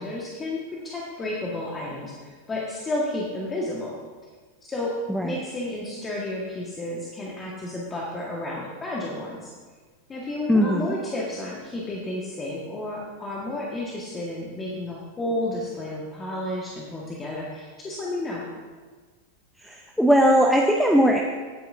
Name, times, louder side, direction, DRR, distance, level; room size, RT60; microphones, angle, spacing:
voice 1, 0.0-4.0 4.6-9.5 10.1-18.5, left 1 dB, 20° left, -3 dB, 1.6 m, -31 dB
voice 2, 5.1-5.4 10.5-10.9 19.6-21.2, equal, ahead, 2 dB, 0.8 m, -19 dB
17.5 x 9.2 x 2.7 m, 1.4 s
figure-of-eight pair, 90°, 0 cm